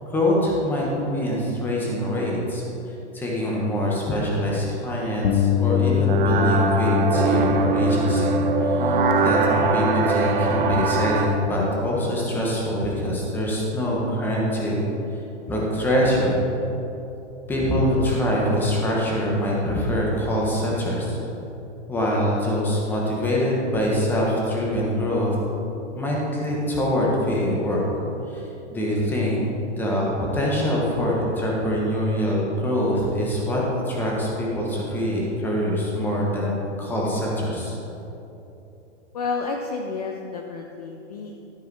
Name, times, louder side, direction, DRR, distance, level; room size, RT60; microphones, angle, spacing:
voice 1, 0.0-2.6 3.1-14.8 15.5-16.5 17.5-21.2 21.9-25.3 25.9-27.8 28.3-28.4 28.7-29.4 29.8-37.8, equal, 5° left, -4 dB, 1.0 m, -24 dB
Bass guitar, 5.2-11.5, left 10 dB, 85° left, 0.8 m, -25 dB
sound 1, 6.1-11.3, right 5 dB, 50° right, 0.7 m, -22 dB
voice 2, 39.1-41.4, left 4 dB, 35° left, 2 dB, 0.5 m, -30 dB
12.5 x 4.8 x 4.7 m, 3.0 s
hypercardioid pair, 160°, 36 cm